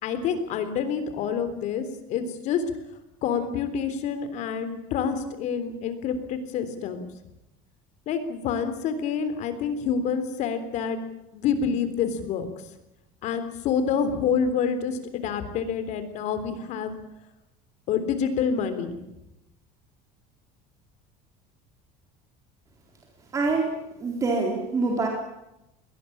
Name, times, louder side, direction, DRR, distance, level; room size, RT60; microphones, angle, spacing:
voice 1, 0.0-2.6 3.2-7.0 8.1-11.0 11.3-12.5 13.2-16.9 17.9-19.0, left 6 dB, 50° left, 10 dB, 3.6 m, -27 dB
voice 2, 23.3-23.7 24.0-25.1, right 3 dB, 20° right, 0 dB, 4.0 m, -25 dB
22.0 x 19.0 x 8.7 m, 0.89 s
cardioid pair, 165°, 16 cm